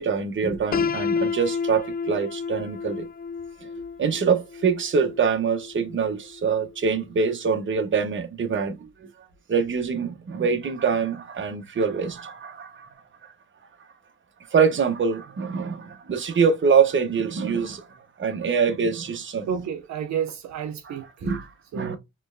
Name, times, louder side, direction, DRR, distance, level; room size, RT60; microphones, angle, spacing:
voice 1, 0.0-3.1 3.6-3.7 4.0-12.9 13.2-13.3 14.4-19.5 21.2-22.0, right 6 dB, 40° right, 1.1 m, -24 dB
Piano, 0.7-6.6, left 5 dB, 30° left, 0.4 m, -31 dB
voice 2, 19.5-21.3 21.7-22.0, right 8 dB, 65° right, 0.7 m, -30 dB
4.5 x 3.2 x 2.6 m
cardioid pair, 90°, 30 cm